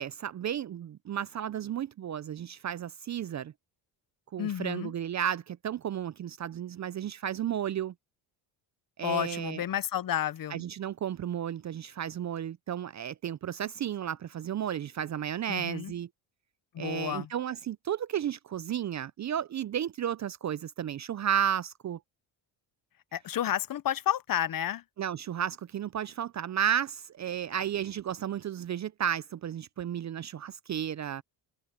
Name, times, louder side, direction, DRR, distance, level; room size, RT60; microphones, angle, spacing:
voice 1, 0.0-3.5 4.3-7.9 9.0-9.6 10.5-16.1 16.8-22.0 25.0-31.2, right 9 dB, 35° right, 0.5 m, -33 dB
voice 2, 4.4-4.9 9.0-10.6 15.5-15.9 16.7-17.3 23.1-24.8, left 10 dB, 45° left, 0.8 m, -31 dB
cardioid pair, 80°, 47 cm